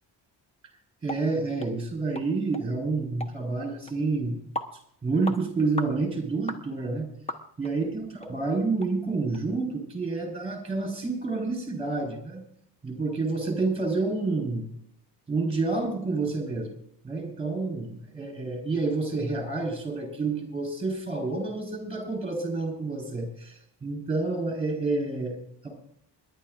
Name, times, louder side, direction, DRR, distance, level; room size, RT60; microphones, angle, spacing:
voice 1, 1.0-4.4 5.0-7.1 7.6-12.4 12.8-14.7 15.3-16.7 17.0-25.8, right 3 dB, 15° right, 3 dB, 4.6 m, -29 dB
sound 1, 1.1-1.2 1.6-1.7 2.2-2.3 2.5-2.7 3.2-3.3 3.9-4.0 4.6-4.7 5.2-5.4 5.8-6.0 6.5-6.6 7.3-7.7 8.2-8.3 8.8-8.9 9.3-9.4, left 1 dB, 15° left, 1.0 m, -35 dB
27.5 x 11.5 x 2.5 m, 0.68 s
cardioid pair, 175°, 42 cm